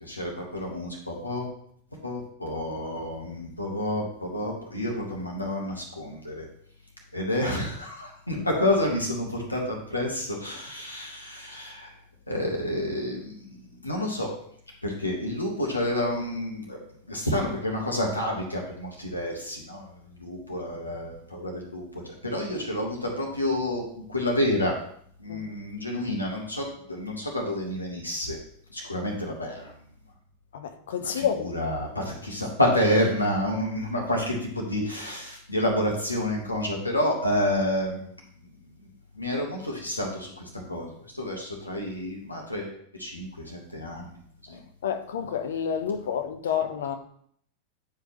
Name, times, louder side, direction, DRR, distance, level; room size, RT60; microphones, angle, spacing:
voice 1, 0.0-1.4 2.0-6.4 7.1-11.9 12.3-13.6 13.8-14.3 14.8-16.8 17.1-23.8 24.1-24.7 25.2-28.4 28.7-29.7 31.0-38.1 39.2-44.1 44.5-44.6, left 1 dB, 85° left, -1 dB, 1.6 m, -29 dB
voice 2, 8.3-8.6 25.3-25.4 30.5-31.4 44.5-47.0, left 8 dB, 60° left, 7 dB, 0.8 m, -29 dB
9.5 x 4.8 x 3.1 m, 0.63 s
figure-of-eight pair, 90°, 0 cm